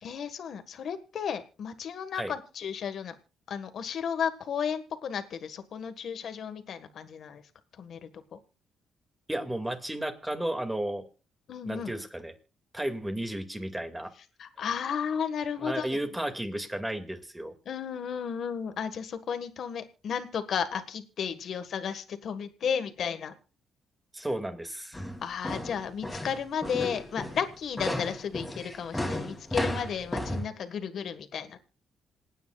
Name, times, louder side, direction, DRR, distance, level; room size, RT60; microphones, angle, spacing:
voice 1, 0.0-3.1 3.5-7.4 7.8-8.4 11.5-11.9 14.4-16.0 17.6-23.3 25.2-31.6, left 7 dB, 60° left, 9 dB, 1.6 m, -33 dB
voice 2, 9.3-11.0 11.7-12.3 12.7-14.1 15.6-17.5 24.1-25.1, right 1 dB, 10° right, 6 dB, 2.2 m, -33 dB
sound 1, 24.9-30.5, left 1 dB, 10° left, 2.9 m, -34 dB
27.0 x 9.3 x 2.4 m, 0.32 s
cardioid pair, 90°, 0 cm